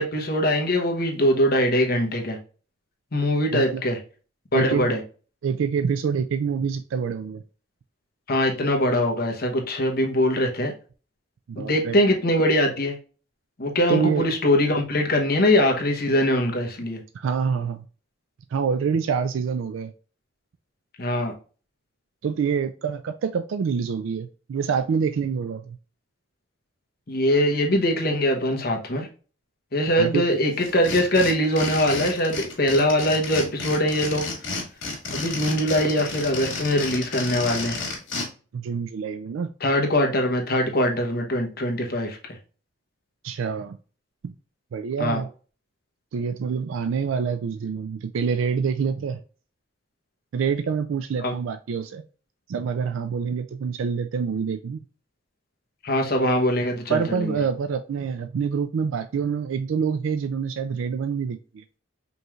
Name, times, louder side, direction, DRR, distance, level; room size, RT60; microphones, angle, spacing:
voice 1, 0.0-2.4 3.1-4.0 4.5-5.0 8.3-10.7 11.6-13.0 13.6-17.0 21.0-21.3 27.1-29.1 29.7-34.3 35.1-37.8 39.6-42.2 45.0-45.2 51.2-51.3 55.8-57.4, left 1 dB, 50° left, 0.9 m, -22 dB
voice 2, 4.5-4.9 5.4-7.4 11.5-12.0 13.9-14.3 17.1-17.9 18.5-19.9 22.2-25.8 30.0-30.2 38.5-39.5 43.2-43.8 44.2-44.3 44.7-45.3 46.1-49.2 50.3-52.0 52.5-54.8 56.9-61.6, right 6 dB, 80° right, 0.3 m, -26 dB
sound 1, 30.6-38.3, left 3 dB, 75° left, 1.8 m, -31 dB
5.2 x 3.1 x 2.4 m
head